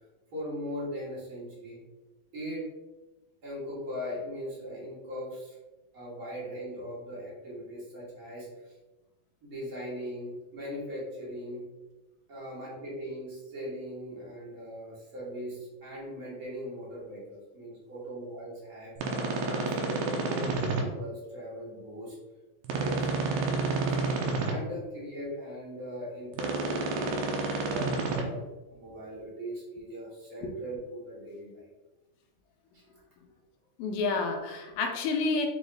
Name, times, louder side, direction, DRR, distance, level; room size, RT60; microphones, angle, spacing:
voice 1, 0.3-1.8 2.3-2.6 3.4-5.6 5.9-8.7 9.4-11.6 12.3-19.0 19.4-22.1 22.7-24.1 24.4-27.2 27.6-28.4 28.7-31.6, equal, 55° right, -7 dB, 0.9 m, -39 dB
sound 1, 19.0-20.8 22.6-24.5 26.3-28.2, right 3 dB, 75° right, 2.0 m, -30 dB
voice 2, 33.8-35.5, left 3 dB, 80° left, 2 dB, 2.0 m, -30 dB
6.2 x 2.5 x 3.3 m, 1.1 s
omnidirectional pair, 3.9 m